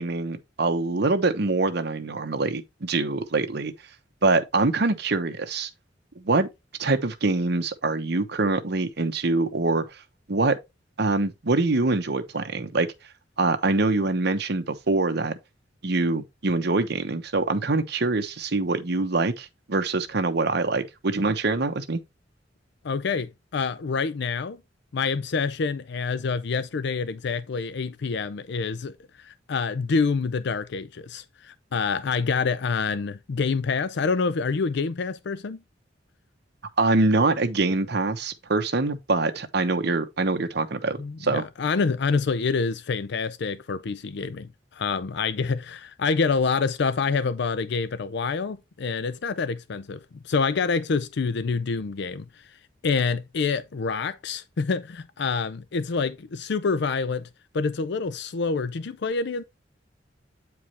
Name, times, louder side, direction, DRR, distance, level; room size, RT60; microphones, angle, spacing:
voice 1, 0.0-3.7 4.2-5.7 6.2-6.5 6.8-9.8 10.3-10.6 11.0-12.9 13.4-15.3 15.8-22.0 36.8-41.4, right 3 dB, 60° right, 1.0 m, -24 dB
voice 2, 22.8-24.6 24.9-35.6 41.0-50.0 50.2-52.2 52.8-57.3 57.5-59.4, left 4 dB, 65° left, 0.5 m, -27 dB
8.7 x 4.7 x 3.3 m
head